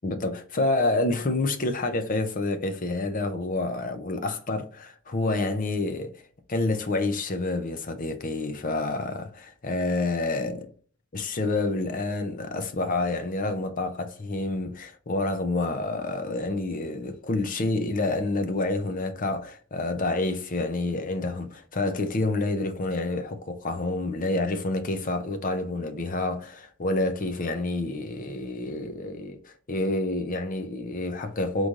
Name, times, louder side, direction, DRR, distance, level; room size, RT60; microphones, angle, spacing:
voice 1, 0.0-6.2 6.5-10.7 11.1-31.7, left 2 dB, 40° left, 0.6 m, -28 dB
3.9 x 3.1 x 3.7 m
head